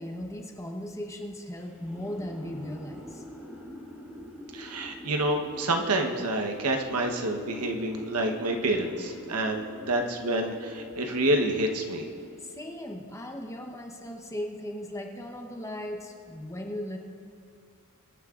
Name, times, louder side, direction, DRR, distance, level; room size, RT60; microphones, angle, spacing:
voice 1, 0.0-3.2 12.4-17.0, left 1 dB, 15° left, 2 dB, 0.9 m, -37 dB
sound 1, 1.6-12.7, left 1 dB, 5° right, 2.0 m, -45 dB
voice 2, 4.5-12.1, right 1 dB, 85° right, 3 dB, 1.1 m, -28 dB
23.0 x 9.5 x 2.5 m, 2.4 s
head